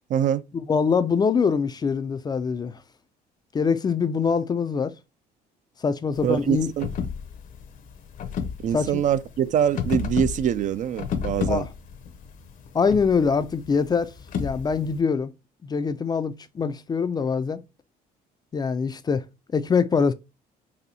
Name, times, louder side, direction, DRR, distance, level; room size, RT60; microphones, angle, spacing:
voice 1, 0.1-0.4 6.2-6.9 8.6-11.7, right 9 dB, 50° right, 0.4 m, -24 dB
voice 2, 0.7-2.8 3.5-4.9 5.8-6.7 8.7-8.9 11.5-11.7 12.7-15.3 15.6-17.6 18.5-19.3 19.5-20.1, left 5 dB, 25° left, 0.3 m, -24 dB
sound 1, 6.1-15.0, left 7 dB, 50° left, 0.7 m, -32 dB
4.2 x 2.7 x 2.7 m
cardioid pair, 110°, 17 cm